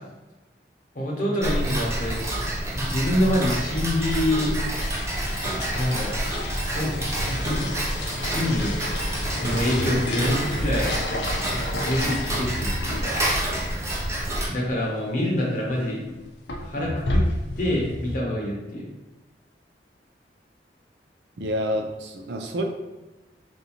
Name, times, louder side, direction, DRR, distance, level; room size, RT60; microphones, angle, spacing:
voice 1, 0.9-2.2 2.7-4.5 5.7-6.2 6.7-8.7 9.4-10.9 11.8-13.2 14.5-16.1 16.6-17.2 17.6-18.9, left 1 dB, 50° left, -3 dB, 0.9 m, -26 dB
Tick-tock, 1.4-14.5, right 1 dB, 15° right, 0.5 m, -28 dB
sound 1, 4.7-13.7 14.0-14.1 14.3-14.4 15.4-15.7 16.1-18.1, left 1 dB, 70° left, 0.6 m, -31 dB
voice 2, 21.4-22.6, equal, 80° right, 4 dB, 0.5 m, -28 dB
3.6 x 2.7 x 2.9 m, 1.1 s
head